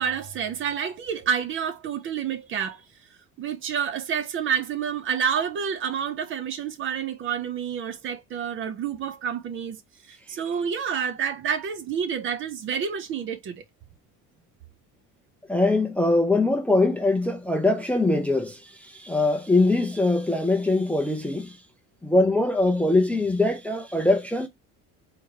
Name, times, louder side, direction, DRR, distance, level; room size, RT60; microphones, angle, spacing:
voice 1, 0.0-2.8 3.4-9.8 10.1-13.6, right 8 dB, 35° right, 0.6 m, -29 dB
voice 2, 15.5-21.6 22.0-24.5, left 2 dB, 5° left, 0.4 m, -22 dB
3.6 x 2.9 x 4.6 m
cardioid pair, 170°, 34 cm